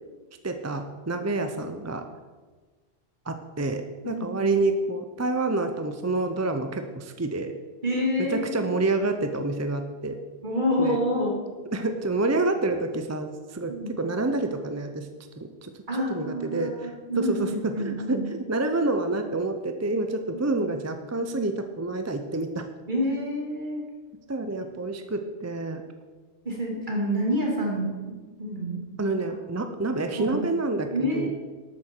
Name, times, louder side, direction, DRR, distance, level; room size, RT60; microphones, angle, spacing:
voice 1, 0.4-2.0 3.3-7.5 8.2-10.2 10.8-11.0 11.7-15.1 15.4-22.6 24.3-25.8 29.0-31.3, right 2 dB, 20° right, 7 dB, 0.4 m, -28 dB
voice 2, 4.0-4.5 7.8-8.7 10.4-11.3 13.7-13.9 15.9-18.3 20.3-20.4 22.9-23.8 26.4-27.9 28.4-28.8 30.1-30.4 30.9-31.3, equal, 45° right, -2 dB, 2.6 m, -28 dB
12.5 x 8.7 x 4.5 m, 1.3 s
omnidirectional pair, 1.2 m